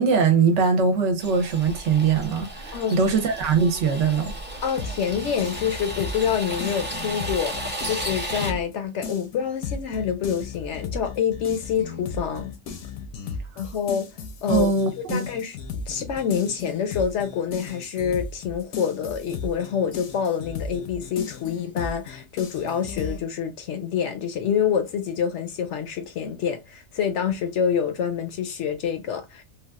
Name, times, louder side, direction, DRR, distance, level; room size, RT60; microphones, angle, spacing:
voice 1, 0.0-4.4 14.5-15.3, right 5 dB, 65° right, 0.9 m, -21 dB
sound 1, 1.2-8.5, right 1 dB, 15° right, 0.4 m, -34 dB
voice 2, 4.6-12.5 13.6-14.1 14.4-14.7 15.0-29.4, left 7 dB, 65° left, 0.8 m, -27 dB
sound 2, 4.8-8.7 9.0-23.2, left 5 dB, 85° left, 1.1 m, -35 dB
3.4 x 2.3 x 2.3 m
omnidirectional pair, 1.4 m